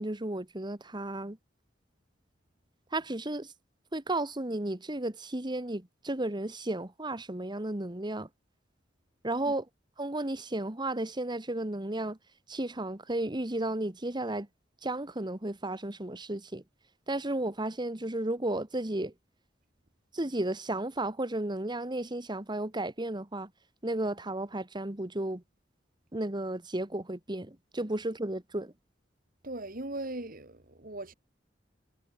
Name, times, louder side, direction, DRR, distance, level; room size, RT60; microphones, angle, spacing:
voice 1, 0.0-1.4 2.9-3.5 3.9-8.3 9.2-9.6 10.0-12.2 12.5-14.5 14.8-16.6 17.1-19.1 20.1-23.5 23.8-25.4 26.1-28.7, right 1 dB, 25° right, 1.7 m, -33 dB
voice 2, 29.4-31.1, right 2 dB, 50° right, 3.5 m, -39 dB
head